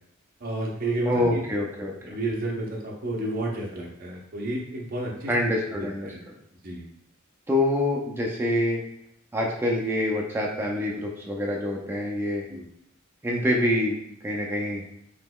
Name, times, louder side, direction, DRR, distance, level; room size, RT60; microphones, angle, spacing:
voice 1, 0.4-1.4 2.1-5.3 5.8-6.2 6.6-6.8 12.5-12.6, right 2 dB, 45° right, -2 dB, 0.6 m, -31 dB
voice 2, 1.1-2.2 5.3-6.1 7.5-8.8 9.3-12.5 13.2-14.0 14.2-14.8, left 1 dB, 10° right, -2 dB, 0.3 m, -26 dB
3.7 x 2.9 x 2.2 m, 0.74 s
head